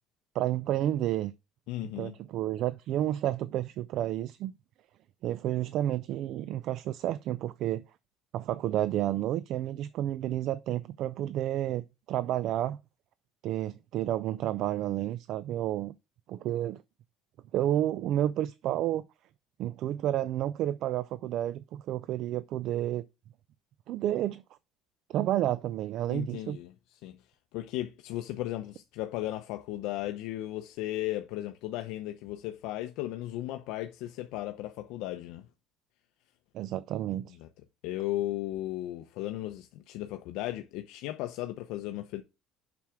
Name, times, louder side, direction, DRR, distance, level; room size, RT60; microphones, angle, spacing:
voice 1, 0.3-1.3 2.0-4.5 5.2-7.8 8.3-12.8 13.4-15.9 16.3-16.8 17.5-19.0 19.6-23.0 23.9-24.4 25.1-26.6 36.5-37.4, right 12 dB, 55° right, 0.4 m, -30 dB
voice 2, 1.7-2.1 26.1-26.7 27.0-27.2 27.5-35.5 37.4-37.5 37.8-42.2, left 15 dB, 75° left, 0.6 m, -35 dB
7.3 x 6.1 x 3.6 m
cardioid pair, 145°, 0 cm